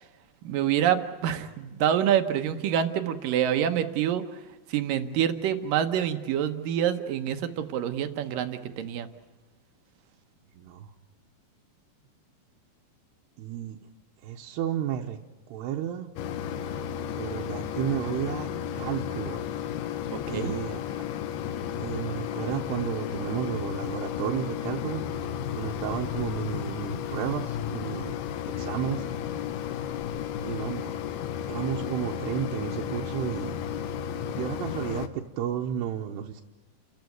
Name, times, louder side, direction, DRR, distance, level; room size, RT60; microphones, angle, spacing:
voice 1, 0.4-4.2 4.7-9.1 20.1-20.6, right 10 dB, 70° right, 8 dB, 2.4 m, -26 dB
voice 2, 10.5-10.9 13.4-13.8 14.2-15.2 15.5-16.1 17.2-18.5 18.7-19.4 20.3-20.8 21.8-25.0 25.6-28.1 28.6-29.1 30.4-30.9 31.5-33.5 34.3-36.4, right 10 dB, 90° right, 0 dB, 3.1 m, -32 dB
Mechanisms, 16.2-35.1, left 9 dB, 80° left, 2.9 m, -33 dB
30.0 x 14.5 x 9.4 m, 1.2 s
omnidirectional pair, 4.7 m